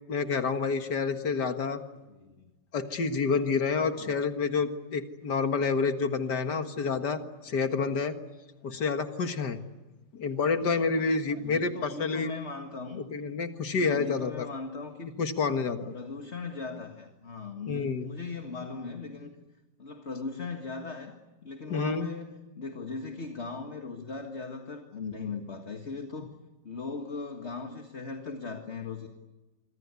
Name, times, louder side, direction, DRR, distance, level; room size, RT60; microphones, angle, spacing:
voice 1, 0.1-1.8 2.7-8.2 8.6-9.6 10.1-12.3 13.0-14.5 15.2-16.0 17.7-18.1 21.7-22.1, left 4 dB, 60° left, 7 dB, 2.2 m, -28 dB
voice 2, 2.1-2.5 3.9-4.2 11.3-13.0 13.8-15.2 15.9-19.4 19.8-21.1 21.4-26.3 26.6-29.1, left 4 dB, 35° left, 4 dB, 2.0 m, -39 dB
26.0 x 25.5 x 8.3 m, 1.1 s
omnidirectional pair, 2.0 m